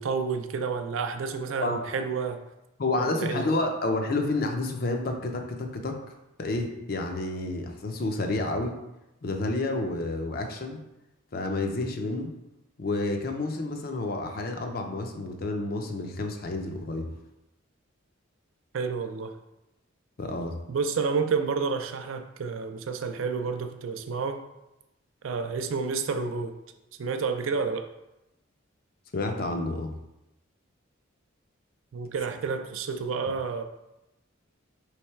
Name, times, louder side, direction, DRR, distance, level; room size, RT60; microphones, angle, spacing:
voice 1, 0.0-2.4 3.0-3.5 18.7-19.4 20.7-24.4 25.2-26.6 27.0-27.9 31.9-33.6, right 5 dB, 75° right, 8 dB, 0.4 m, -30 dB
voice 2, 2.8-6.0 6.4-8.8 9.2-10.8 11.3-12.3 12.8-17.1 20.2-20.5 29.1-29.9, left 2 dB, 45° left, 4 dB, 0.5 m, -30 dB
3.3 x 3.1 x 4.4 m, 0.92 s
head